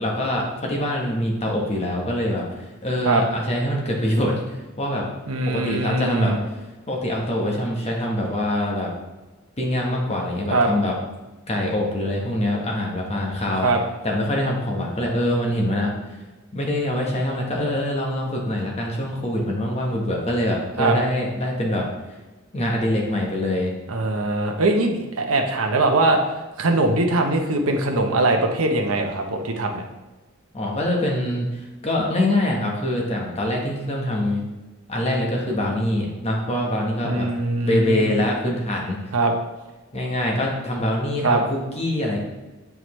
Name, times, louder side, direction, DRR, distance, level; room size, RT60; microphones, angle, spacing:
voice 1, 0.0-5.1 5.4-6.4 6.9-8.9 9.6-10.9 11.5-13.7 14.0-15.9 16.5-21.9 22.5-23.7 30.5-34.4 34.9-37.3 37.6-39.0 39.9-42.2, left 1 dB, 30° left, -1 dB, 1.1 m, -24 dB
voice 2, 5.3-6.4 10.5-10.7 13.6-13.8 20.8-21.0 23.9-26.2 26.6-29.8 37.0-38.2 39.1-39.3 41.2-41.4, right 2 dB, 85° right, 3 dB, 0.8 m, -21 dB
7.7 x 4.7 x 3.1 m, 1.2 s
head